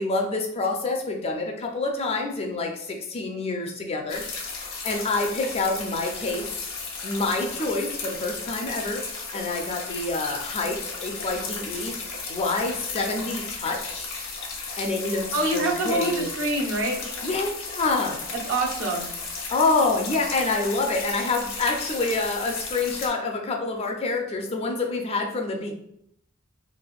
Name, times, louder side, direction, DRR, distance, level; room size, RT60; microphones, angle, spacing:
voice 1, 0.0-4.2 4.5-6.6 7.0-11.9 12.3-14.1 14.8-15.3 15.5-16.3 17.2-18.2 19.5-25.7, left 3 dB, 30° left, 2 dB, 0.3 m, -27 dB
sound 1, 4.1-23.1, left 4 dB, 75° left, 0.7 m, -35 dB
voice 2, 15.3-17.0 18.4-19.1, right 2 dB, 65° right, -1 dB, 0.6 m, -26 dB
3.3 x 2.5 x 2.3 m, 0.73 s
head